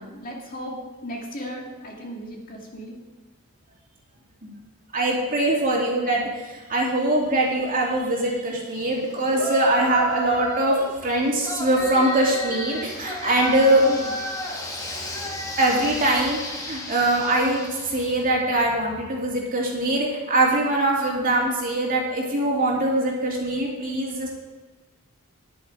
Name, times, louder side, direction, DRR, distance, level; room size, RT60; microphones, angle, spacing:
voice 1, 0.0-3.0 13.7-14.2, equal, 40° left, -1 dB, 2.1 m, -36 dB
voice 2, 4.9-14.0 15.6-24.3, right 1 dB, 40° right, -2 dB, 2.7 m, -22 dB
Yell, 9.3-10.9 11.4-18.1, equal, 15° left, 1.6 m, -32 dB
10.5 x 8.9 x 5.0 m, 1.3 s
head